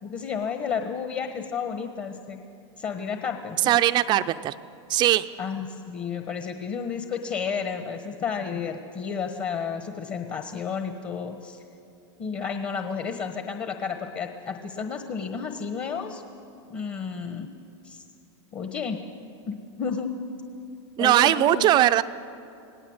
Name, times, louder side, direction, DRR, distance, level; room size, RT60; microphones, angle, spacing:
voice 1, 0.0-2.4 2.8-3.8 5.4-11.6 12.2-16.2 16.7-17.5 17.8-18.0 18.5-19.0 19.5-20.1 21.0-21.6, left 6 dB, 30° left, 6 dB, 1.3 m, -32 dB
voice 2, 3.6-4.5 4.9-5.3 21.0-22.0, right 13 dB, 30° right, 12 dB, 0.5 m, -20 dB
27.0 x 18.0 x 8.1 m, 2.6 s
supercardioid pair, 140°, 15 cm